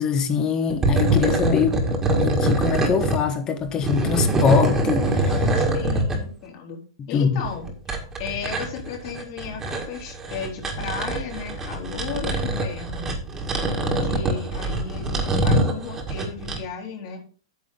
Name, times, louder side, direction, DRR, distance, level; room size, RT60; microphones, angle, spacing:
voice 1, 0.0-1.8 2.2-5.4 7.1-7.4, left 6 dB, 25° left, 1.2 m, -23 dB
sound 1, 0.7-3.2 3.6-6.2 7.4-16.6, right 1 dB, 15° right, 1.8 m, -24 dB
voice 2, 5.5-6.8 7.1-7.7 8.2-13.2 13.8-17.2, left 6 dB, 50° left, 3.7 m, -35 dB
9.3 x 7.4 x 3.9 m
hypercardioid pair, 150°, 3 cm